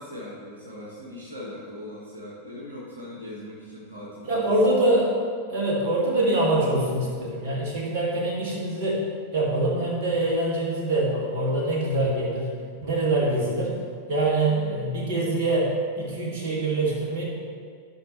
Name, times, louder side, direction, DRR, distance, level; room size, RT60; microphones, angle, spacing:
voice 1, 0.0-4.5, left 1 dB, 75° right, -5 dB, 1.6 m, -40 dB
voice 2, 4.2-5.1 5.5-9.0 9.3-12.5 12.8-13.8 14.1-17.2, right 1 dB, 45° right, -4 dB, 2.4 m, -24 dB
13.0 x 5.8 x 3.3 m, 2.1 s
figure-of-eight pair, 90°, 0 cm